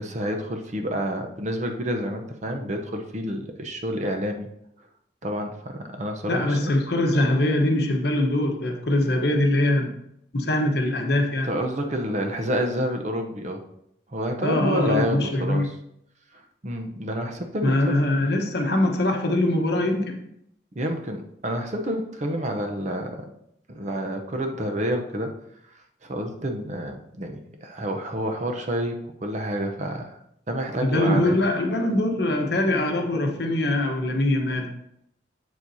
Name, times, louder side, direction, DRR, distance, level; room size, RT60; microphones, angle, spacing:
voice 1, 0.0-4.5 5.2-6.7 11.4-13.6 14.1-15.7 16.3-17.7 20.7-23.3 23.7-25.3 26.0-30.2 30.5-31.4, equal, 40° right, 4 dB, 0.7 m, -29 dB
voice 2, 6.3-9.9 10.3-11.5 14.4-15.7 17.6-20.2 30.8-34.7, left 1 dB, 55° left, 3 dB, 1.1 m, -23 dB
7.8 x 7.2 x 2.7 m, 0.76 s
head